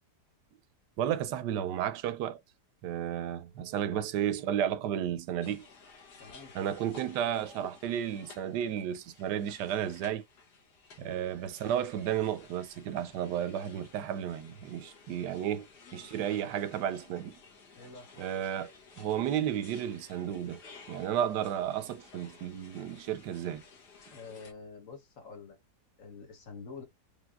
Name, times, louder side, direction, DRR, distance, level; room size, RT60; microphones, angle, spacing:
voice 1, 1.0-2.4 2.8-5.6 6.5-10.2 11.0-15.7 15.9-17.4 18.2-18.7 19.0-20.6 20.9-23.6, right 10 dB, 80° right, 1.2 m, -33 dB
sound 1, 5.4-24.5, left 4 dB, 75° left, 1.9 m, -55 dB
voice 2, 6.2-6.8 11.0-11.2 15.9-16.4 17.8-18.3 24.1-25.6 26.0-26.8, left 4 dB, 55° left, 1.3 m, -48 dB
5.1 x 3.1 x 2.4 m
omnidirectional pair, 1.8 m